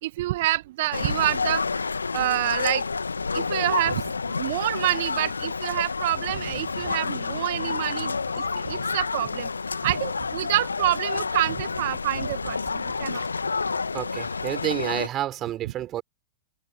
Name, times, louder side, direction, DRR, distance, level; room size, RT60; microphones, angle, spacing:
voice 1, 0.0-1.6 2.1-2.8 3.3-8.2 8.6-9.5 9.8-13.2, right 16 dB, 55° right, 1.7 m, -27 dB
sound 1, 0.9-15.1, left 4 dB, 75° left, 2.4 m, -29 dB
voice 2, 13.9-16.0, right 12 dB, 30° right, 4.4 m, -29 dB
figure-of-eight pair, 90°, 0 cm